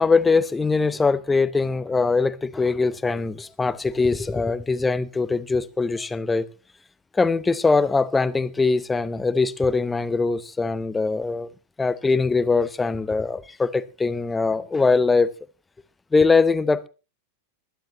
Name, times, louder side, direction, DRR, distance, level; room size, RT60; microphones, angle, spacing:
voice 1, 0.0-6.5 7.1-11.5 11.8-15.3 16.1-16.9, left 4 dB, 10° left, 0.8 m, -22 dB
20.5 x 11.5 x 3.0 m
figure-of-eight pair, 90°, 0 cm